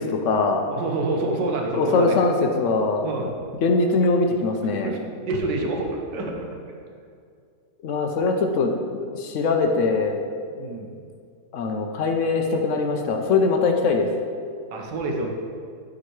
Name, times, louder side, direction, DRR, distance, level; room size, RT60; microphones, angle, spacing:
voice 1, 0.0-0.6 1.7-3.3 3.6-4.9 7.8-10.2 11.5-14.1, left 3 dB, 65° left, 3 dB, 0.7 m, -22 dB
voice 2, 0.7-2.2 3.0-3.3 4.8-6.5 10.6-11.0 14.7-15.4, right 2 dB, 85° right, 2 dB, 1.4 m, -27 dB
9.8 x 5.1 x 3.1 m, 2.3 s
omnidirectional pair, 1.8 m